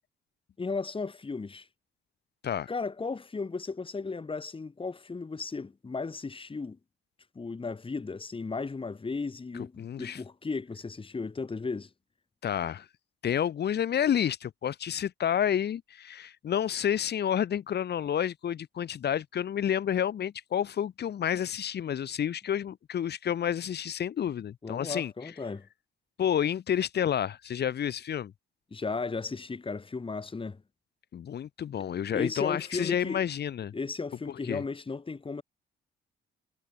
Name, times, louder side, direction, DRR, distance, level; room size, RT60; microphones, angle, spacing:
voice 1, 0.6-1.7 2.7-6.8 7.4-11.9 24.6-25.7 28.7-30.6 32.1-33.2 33.7-35.4, left 4 dB, 25° left, 3.5 m, -35 dB
voice 2, 9.5-10.2 12.4-12.9 13.2-25.1 26.2-28.3 31.1-33.7 34.3-34.6, left 9 dB, 55° left, 1.7 m, -30 dB
cardioid pair, 90°, 20 cm